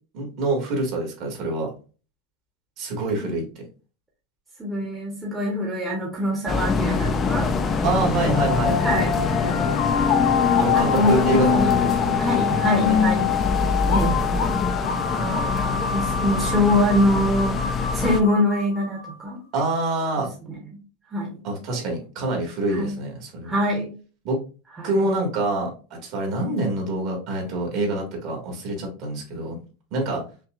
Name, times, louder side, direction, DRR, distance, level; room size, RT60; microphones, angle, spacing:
voice 1, 0.1-1.7 2.8-3.6 7.8-8.8 10.6-12.2 12.9-13.0 19.5-20.3 21.4-23.6 24.2-24.4 24.8-29.6 29.9-30.2, right 2 dB, 45° right, 0 dB, 1.7 m, -26 dB
voice 2, 4.6-7.8 8.8-9.2 10.7-13.2 13.9-14.1 14.8-19.4 20.2-20.8 21.1-21.4 22.7-23.0 23.4-23.9 24.8-24.9, left 1 dB, 10° right, -3 dB, 1.0 m, -25 dB
sound 1, 6.5-18.2, left 4 dB, 20° left, 0.5 m, -24 dB
sound 2, 8.2-19.1, left 8 dB, 55° left, 0.8 m, -26 dB
5.6 x 2.4 x 2.4 m, 0.35 s
supercardioid pair, 155°, 0 cm